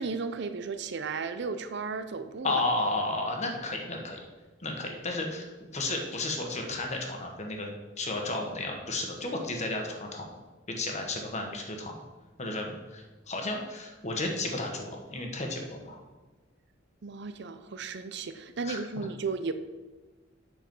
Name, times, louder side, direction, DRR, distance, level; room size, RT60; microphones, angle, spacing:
voice 1, 0.0-2.6 17.0-19.5, right 4 dB, 60° right, 10 dB, 0.6 m, -34 dB
voice 2, 2.4-4.2 4.6-5.5 5.7-7.7 8.0-10.3 10.7-12.0 12.4-16.0 18.6-18.8, left 2 dB, 35° left, 2 dB, 1.3 m, -33 dB
7.9 x 6.2 x 5.4 m, 1.2 s
head